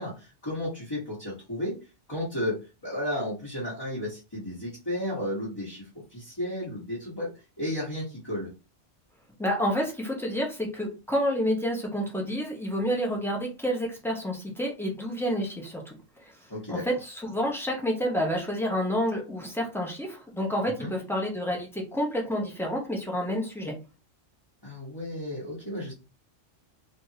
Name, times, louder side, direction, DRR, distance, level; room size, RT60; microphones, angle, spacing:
voice 1, 0.0-1.8 2.1-5.8 6.1-7.3 7.6-8.5 16.5-16.8 20.8-20.9 24.6-25.9, left 1 dB, 20° left, -7 dB, 1.2 m, -33 dB
voice 2, 9.4-15.9 16.2-16.3 16.7-23.7, equal, ahead, -1 dB, 0.7 m, -29 dB
3.5 x 2.6 x 2.8 m, 0.31 s
omnidirectional pair, 1.3 m